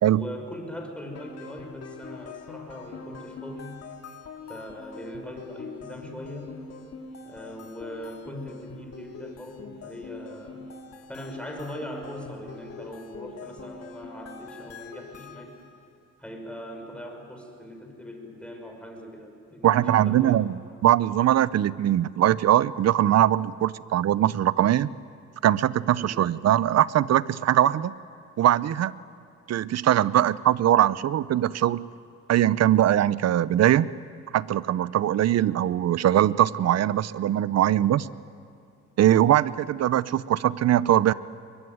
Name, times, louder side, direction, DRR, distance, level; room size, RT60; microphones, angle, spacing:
voice 1, 0.1-3.8 4.5-6.6 7.2-10.7 11.1-15.5 16.2-20.4 26.0-26.3, equal, 5° left, 3 dB, 5.8 m, -40 dB
sound 1, 1.1-15.8, left 4 dB, 55° left, 2.5 m, -44 dB
voice 2, 19.6-24.9 25.4-27.9 28.4-28.9 29.5-31.9 32.3-33.9 34.3-38.1 39.0-41.1, right 12 dB, 55° right, 18 dB, 0.7 m, -21 dB
23.0 x 22.0 x 9.4 m, 2.4 s
cardioid pair, 90°, 30 cm